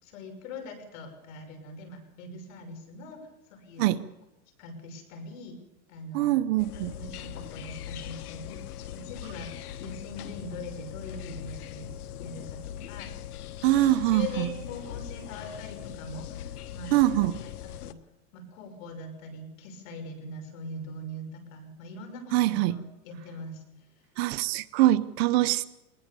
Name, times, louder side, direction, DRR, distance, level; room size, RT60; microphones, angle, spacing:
voice 1, 0.0-3.2 3.5-3.9 4.6-5.6 5.9-6.4 6.7-11.9 12.2-13.1 13.6-17.2 17.4-18.0 18.3-23.6, left 1 dB, 60° left, 5 dB, 6.0 m, -42 dB
voice 2, 6.1-6.9 13.6-14.5 16.9-17.3 22.3-22.8 24.2-25.6, right 15 dB, 45° right, 14 dB, 0.9 m, -23 dB
sound 1, 6.6-17.9, left 10 dB, 80° left, 1.4 m, -40 dB
20.5 x 20.0 x 6.9 m, 0.94 s
supercardioid pair, 150°, 45 cm